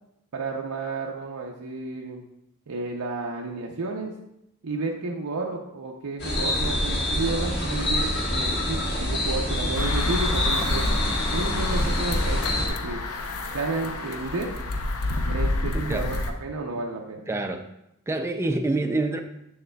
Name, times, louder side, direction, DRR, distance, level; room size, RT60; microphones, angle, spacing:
voice 1, 0.3-2.3 2.7-4.1 4.6-10.8 11.3-13.0 13.5-14.5 15.3-17.3, right 3 dB, 90° right, 0 dB, 0.6 m, -31 dB
sound 1, 6.2-12.7, left 1 dB, 50° left, 1.5 m, -26 dB
sound 2, 9.8-16.3, left 2 dB, 80° left, 0.6 m, -28 dB
voice 2, 17.3-17.6 18.1-19.2, right 2 dB, 10° right, 5 dB, 0.3 m, -26 dB
7.3 x 6.5 x 2.2 m, 0.83 s
head